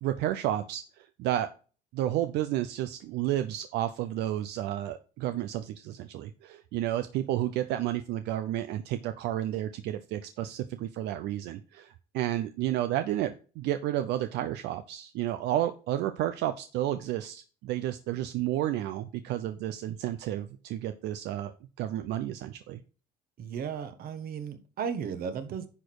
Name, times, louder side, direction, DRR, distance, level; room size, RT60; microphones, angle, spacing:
voice 1, 0.0-1.5 1.9-21.5 21.8-22.8, right 13 dB, 85° right, 10 dB, 0.6 m, -31 dB
voice 2, 23.4-25.7, right 7 dB, 60° right, 10 dB, 1.4 m, -35 dB
9.9 x 4.4 x 4.6 m, 0.37 s
cardioid pair, 110°, 17 cm